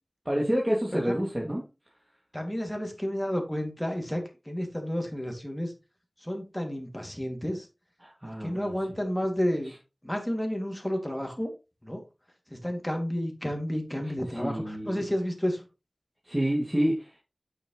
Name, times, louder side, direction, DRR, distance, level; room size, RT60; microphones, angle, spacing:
voice 1, 0.3-1.6 8.0-8.8 14.3-15.0 16.2-17.1, equal, 15° right, -3 dB, 2.4 m, -28 dB
voice 2, 2.3-5.7 6.2-7.7 8.4-9.7 10.0-11.5 11.8-12.0 12.5-15.6, equal, 10° left, 3 dB, 2.6 m, -31 dB
8.8 x 6.4 x 3.2 m, 0.28 s
wide cardioid pair, 55°, 0 cm